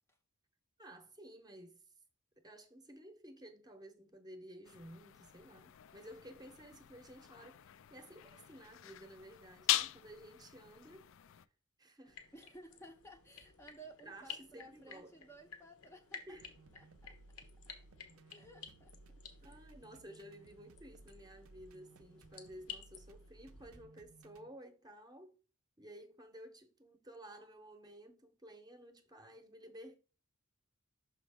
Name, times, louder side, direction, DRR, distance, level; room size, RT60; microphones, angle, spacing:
voice 1, 0.8-1.8 2.4-11.1 11.8-12.2 14.0-15.2 16.3-16.5 19.4-25.3 25.8-30.0, right 1 dB, 20° right, 0.8 m, -54 dB
sound 1, 4.6-11.5, left 14 dB, 60° left, 0.3 m, -41 dB
sound 2, 12.0-23.8, left 7 dB, 90° left, 1.2 m, -54 dB
voice 2, 12.3-16.3 16.7-17.2 18.3-18.9 19.4-19.7, right 1 dB, 10° left, 0.6 m, -56 dB
sound 3, 16.4-24.5, right 2 dB, 70° right, 0.5 m, -60 dB
6.2 x 5.0 x 3.5 m
head